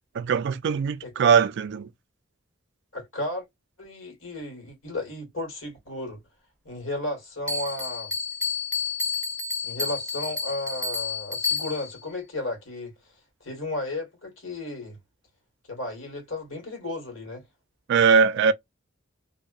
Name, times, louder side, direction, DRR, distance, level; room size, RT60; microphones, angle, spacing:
voice 1, 0.2-1.9 17.9-18.5, right 6 dB, 60° right, 0.3 m, -21 dB
voice 2, 2.9-3.4 3.8-6.2 6.6-8.1 9.6-12.9 13.4-15.0 15.7-17.4, left 2 dB, 75° left, 1.6 m, -34 dB
Bell, 7.5-12.0, left 4 dB, 5° left, 0.5 m, -30 dB
2.6 x 2.2 x 2.3 m
head